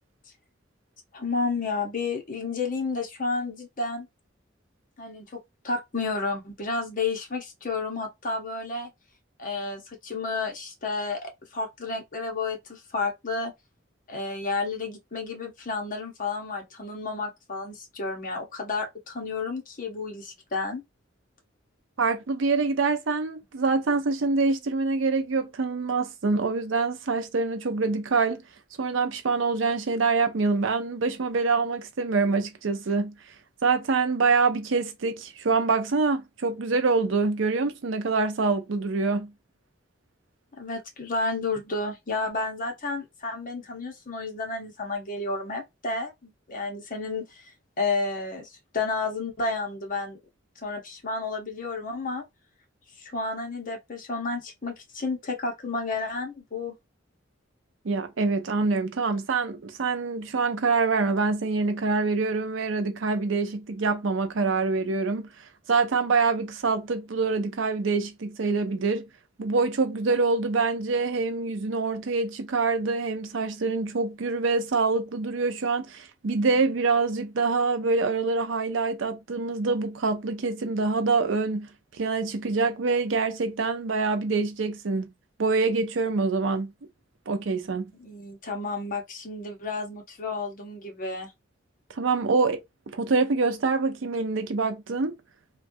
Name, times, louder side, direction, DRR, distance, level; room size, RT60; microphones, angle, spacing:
voice 1, 1.1-4.1 5.0-8.9 9.4-13.5 14.1-20.8 40.6-47.5 47.8-50.2 50.6-52.2 53.0-56.7 88.0-91.3, left 3 dB, 45° left, 0.9 m, -31 dB
voice 2, 22.0-28.4 28.8-33.1 33.6-39.3 57.8-65.3 65.7-69.1 69.4-81.7 82.0-85.1 85.4-86.7 87.3-87.9 92.0-92.6 92.9-95.1, right 4 dB, 90° right, 0.5 m, -25 dB
3.1 x 2.3 x 2.6 m
head